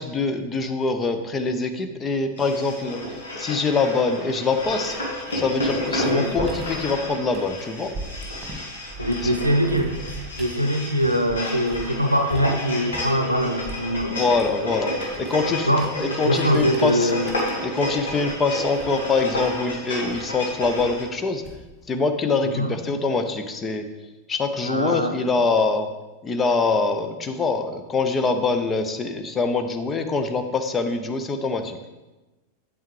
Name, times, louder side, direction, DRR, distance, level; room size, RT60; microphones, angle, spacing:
voice 1, 0.0-3.0 3.4-5.0 5.3-7.9 9.2-9.4 14.1-17.1 17.6-21.4 21.9-23.8 24.3-25.9 26.2-31.8, left 4 dB, 20° left, 7 dB, 0.7 m, -24 dB
sound 1, 2.4-21.0, left 1 dB, 70° left, 1.9 m, -31 dB
sound 2, 4.6-12.0 12.3-21.9, right 2 dB, 15° right, 1.7 m, -41 dB
voice 2, 6.0-6.3 9.0-14.2 15.7-15.9 16.2-17.3 22.4-22.7 24.6-25.5, equal, 90° right, 6 dB, 0.6 m, -23 dB
8.9 x 7.5 x 3.2 m, 1.1 s
figure-of-eight pair, 90°, 0 cm